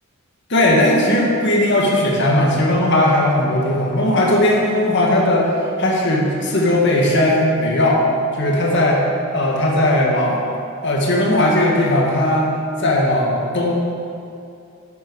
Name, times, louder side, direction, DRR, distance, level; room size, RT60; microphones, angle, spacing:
voice 1, 0.5-8.0 8.4-9.0 9.3-10.5 10.8-12.5 12.8-13.7, left 1 dB, 55° left, -2 dB, 2.1 m, -17 dB
11.0 x 8.2 x 6.4 m, 2.6 s
head